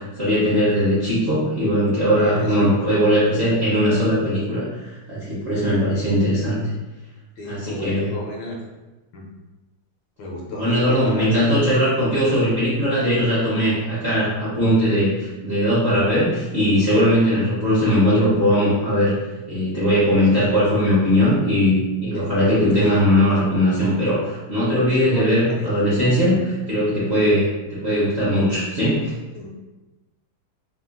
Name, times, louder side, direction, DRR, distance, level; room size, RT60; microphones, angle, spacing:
voice 1, 0.0-6.6 7.4-8.1 10.6-19.1 19.5-29.0, equal, 55° right, -11 dB, 0.7 m, -19 dB
voice 2, 2.2-2.6 6.0-6.3 7.4-8.6 9.1-9.3 10.2-11.6 20.3-20.5 22.1-22.3 22.7-22.9 24.9-25.6 29.3-29.5, left 1 dB, 75° left, -2 dB, 1.2 m, -31 dB
3.6 x 2.2 x 2.4 m, 1.1 s
omnidirectional pair, 2.2 m